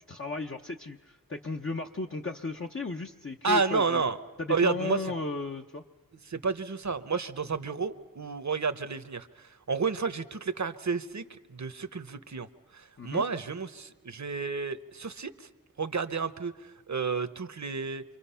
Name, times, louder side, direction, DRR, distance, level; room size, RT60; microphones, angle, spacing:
voice 1, 0.0-4.0 4.4-5.8 13.0-13.2, left 3 dB, 35° left, 1 dB, 0.8 m, -35 dB
voice 2, 3.4-4.2 4.5-5.0 6.3-12.5 12.7-15.5 15.8-18.0, right 4 dB, 50° right, 11 dB, 1.0 m, -31 dB
28.5 x 25.0 x 5.7 m, 1.3 s
wide cardioid pair, 65°, 35 cm